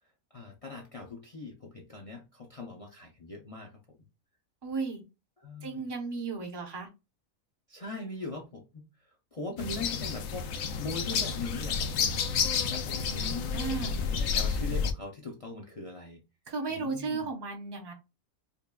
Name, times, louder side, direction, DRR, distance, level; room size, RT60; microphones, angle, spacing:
voice 1, 0.3-3.7 5.4-5.9 7.7-8.8 9.3-10.5 10.8-12.1 12.7-13.5 14.0-16.2 16.7-17.3, left 2 dB, 60° left, 0.3 m, -41 dB
voice 2, 4.6-5.0 5.6-6.9 13.5-14.0 16.5-17.9, right 4 dB, 25° right, 0.6 m, -34 dB
sound 1, 9.6-14.9, left 6 dB, 75° left, 1.0 m, -30 dB
5.2 x 2.2 x 2.3 m
omnidirectional pair, 1.5 m